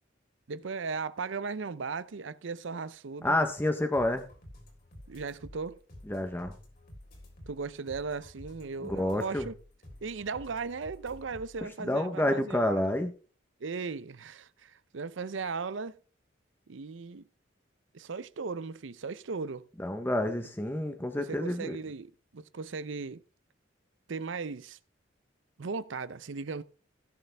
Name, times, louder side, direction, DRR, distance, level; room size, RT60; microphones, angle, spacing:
voice 1, 0.5-3.4 5.1-5.8 7.5-9.5 10.0-13.0 13.6-16.0 16.7-17.2 17.9-19.7 21.3-23.2 24.1-24.8 25.6-26.6, right 4 dB, 75° right, 0.6 m, -37 dB
voice 2, 3.2-4.2 6.1-6.5 8.8-9.5 11.8-13.1 19.8-21.8, left 1 dB, 10° left, 0.8 m, -29 dB
sound 1, 3.9-11.7, left 1 dB, 50° left, 3.5 m, -51 dB
16.5 x 6.7 x 3.4 m
head